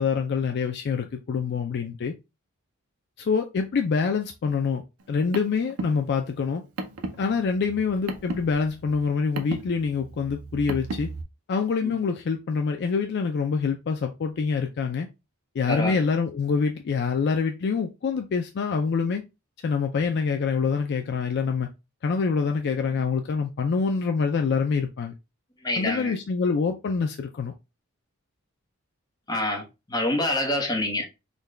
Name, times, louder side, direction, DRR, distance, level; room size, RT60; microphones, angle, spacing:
voice 1, 0.0-2.1 3.2-4.8 5.1-6.6 7.2-11.1 11.5-15.1 15.6-19.2 19.6-21.7 22.0-25.1 25.8-27.5, left 5 dB, 50° left, 0.4 m, -26 dB
Car, 5.0-11.2, right 3 dB, 75° right, 0.5 m, -36 dB
voice 2, 25.6-26.1 29.3-29.6 29.9-31.1, left 1 dB, 20° left, 0.8 m, -26 dB
3.8 x 2.2 x 3.1 m
head